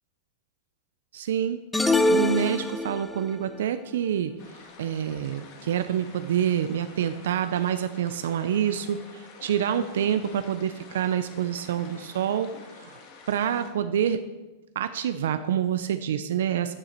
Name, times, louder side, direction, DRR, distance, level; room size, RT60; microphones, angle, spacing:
voice 1, 1.1-1.6 2.1-4.3 4.8-12.5 12.8-13.0 13.3-14.2 14.8-16.7, right 9 dB, 85° right, 10 dB, 0.5 m, -27 dB
sound 1, 1.7-3.3, left 2 dB, 5° left, 0.4 m, -24 dB
sound 2, 4.4-13.7, left 5 dB, 40° left, 1.5 m, -48 dB
11.5 x 6.7 x 4.5 m, 1.1 s
supercardioid pair, 160°, 0 cm